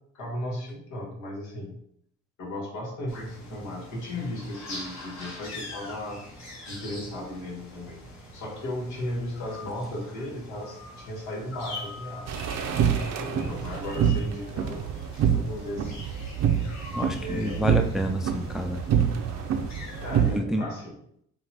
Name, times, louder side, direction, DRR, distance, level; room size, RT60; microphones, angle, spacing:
voice 1, 0.1-1.7 2.4-8.0 8.3-12.3 13.1-15.9 17.2-17.7 20.0-20.9, left 1 dB, 85° left, -2 dB, 1.6 m, -36 dB
sound 1, 3.1-20.4, left 2 dB, 60° left, 1.6 m, -43 dB
sound 2, 12.3-20.3, right 8 dB, 60° right, 0.6 m, -26 dB
voice 2, 16.9-18.8 20.3-20.7, equal, ahead, 5 dB, 0.4 m, -29 dB
5.7 x 2.4 x 3.5 m, 0.71 s
cardioid pair, 90°, 30 cm